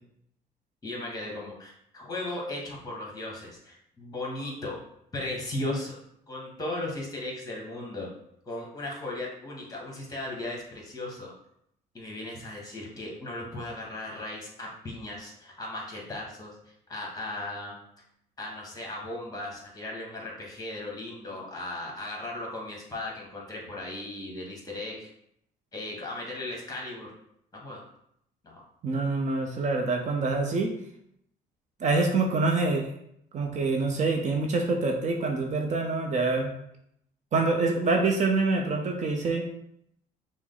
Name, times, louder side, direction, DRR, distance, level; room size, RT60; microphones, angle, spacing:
voice 1, 0.8-4.8 5.1-6.0 6.3-8.1 8.4-11.3 11.9-16.5 16.9-17.7 18.4-25.1 25.7-27.1 27.5-27.8 28.4-28.6, left 2 dB, 20° left, -2 dB, 1.5 m, -36 dB
voice 2, 28.8-30.7 31.8-32.9 33.3-36.5 37.3-39.4, right 3 dB, 45° right, 2 dB, 0.6 m, -26 dB
6.0 x 2.1 x 3.9 m, 0.73 s
cardioid pair, 110°, 17 cm